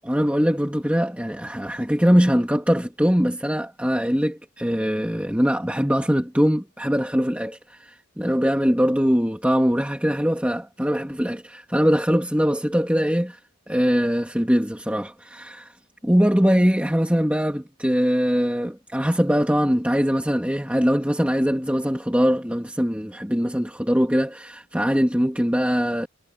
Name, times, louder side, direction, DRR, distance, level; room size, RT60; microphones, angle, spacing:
voice 1, 0.0-13.4 13.7-15.7 16.0-26.1, equal, 5° right, 2.1 m, -22 dB
head